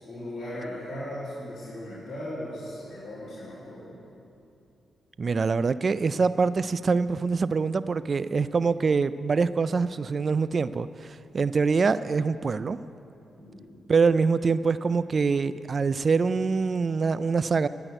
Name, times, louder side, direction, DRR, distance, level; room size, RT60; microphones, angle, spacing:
voice 1, 0.0-4.1 13.3-13.8, left 1 dB, 45° left, -10 dB, 3.7 m, -38 dB
voice 2, 5.2-12.8 13.9-17.7, right 4 dB, 45° right, 15 dB, 0.4 m, -24 dB
13.0 x 5.9 x 9.2 m, 2.7 s
cardioid pair, 65°, 0 cm